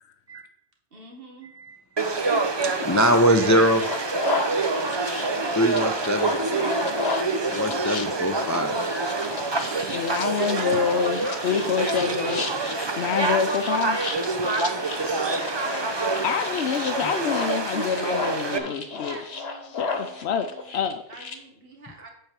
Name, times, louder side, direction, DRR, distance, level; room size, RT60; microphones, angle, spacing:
voice 1, 0.9-1.5 10.3-13.0 18.1-20.8 21.1-22.1, right 2 dB, 60° right, 1 dB, 1.9 m, -43 dB
voice 2, 2.0-3.9 5.5-6.3 7.5-8.9, equal, 20° left, 7 dB, 0.5 m, -23 dB
Conversation / Crowd, 2.0-18.6, right 3 dB, 30° right, 0.7 m, -27 dB
sound 1, 3.7-21.3, left 4 dB, 70° left, 1.4 m, -34 dB
voice 3, 9.9-12.4 13.0-14.0 16.2-19.2 19.7-20.5 20.7-21.0, left 7 dB, 90° left, 7 dB, 0.9 m, -26 dB
8.7 x 4.6 x 7.3 m, 0.72 s
omnidirectional pair, 1.1 m